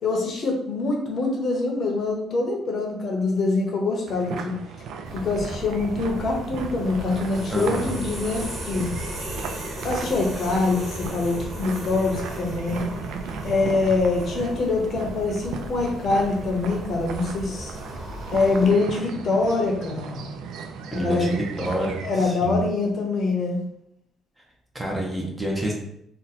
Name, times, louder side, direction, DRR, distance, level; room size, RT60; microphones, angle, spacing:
voice 1, 0.0-4.5 5.1-8.9 9.8-12.9 13.4-17.8 18.3-20.2 20.9-21.4 22.0-23.6, left 3 dB, 40° left, 0 dB, 0.7 m, -24 dB
sound 1, 4.1-22.3, right 5 dB, 85° right, 0.3 m, -37 dB
sound 2, 5.0-18.7, equal, 45° right, 1.3 m, -36 dB
voice 2, 7.5-7.9 20.9-22.6 24.7-25.7, right 1 dB, 10° right, -1 dB, 0.5 m, -28 dB
2.7 x 2.1 x 4.0 m, 0.75 s
cardioid pair, 155°, 0 cm